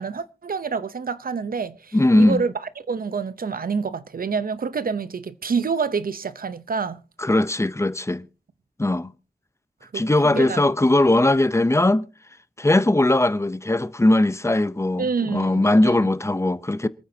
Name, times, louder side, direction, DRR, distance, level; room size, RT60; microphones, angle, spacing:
voice 1, 0.0-2.5 2.9-7.0 9.9-10.6 15.0-15.9, right 5 dB, 75° right, 0.8 m, -27 dB
voice 2, 1.9-2.4 7.2-8.2 8.8-9.1 9.9-12.0 12.6-16.9, left 1 dB, 20° left, 0.7 m, -19 dB
27.0 x 9.3 x 2.8 m
wide cardioid pair, 80°, 15 cm